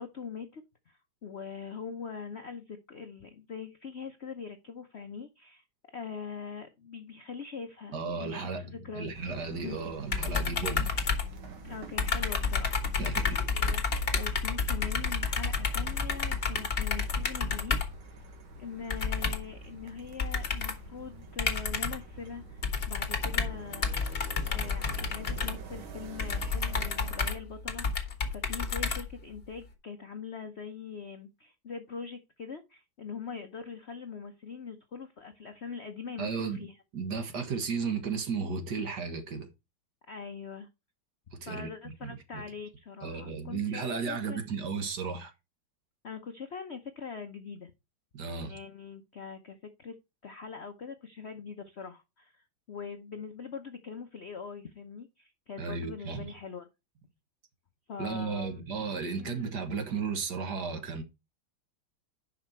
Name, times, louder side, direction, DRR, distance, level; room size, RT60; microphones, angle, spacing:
voice 1, 0.0-5.6 5.9-9.1 9.6-9.8 11.6-12.8 13.5-13.9 14.1-17.8 18.6-23.9 24.5-36.8 40.1-40.7 41.4-44.4 46.0-47.7 48.4-50.0 50.2-56.7 57.9-58.5 59.2-59.5, left 6 dB, 60° left, 0.7 m, -42 dB
voice 2, 7.9-8.7 9.0-10.9 13.0-13.5 36.2-36.6 36.9-39.5 41.4-42.4 43.0-45.3 48.1-48.5 55.6-56.3 58.0-61.0, right 5 dB, 55° right, 1.8 m, -34 dB
sound 1, 9.1-27.4, right 4 dB, 75° right, 2.3 m, -48 dB
sound 2, 10.1-11.7 12.0-18.0 18.9-19.6 20.2-20.9 21.4-22.1 22.6-29.5, left 5 dB, 35° left, 1.2 m, -30 dB
10.0 x 5.6 x 4.4 m
omnidirectional pair, 2.3 m